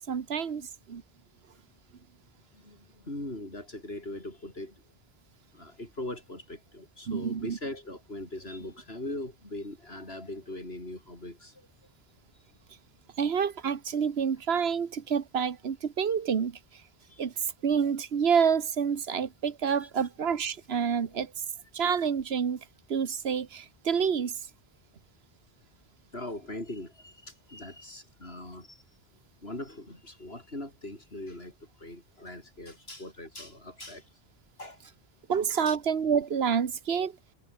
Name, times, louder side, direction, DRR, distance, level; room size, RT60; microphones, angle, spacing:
voice 1, 0.1-0.6 0.9-1.0 7.1-7.6 13.2-16.8 17.2-21.3 21.7-22.6 22.9-24.4 35.3-37.2, right 7 dB, 80° right, 1.4 m, -28 dB
voice 2, 2.5-4.7 5.5-11.7 17.1-17.3 19.8-19.9 21.1-21.2 26.1-28.8 29.4-34.1 34.6-34.9 35.7-35.8, left 1 dB, 75° left, 6.3 m, -41 dB
omnidirectional pair, 1.0 m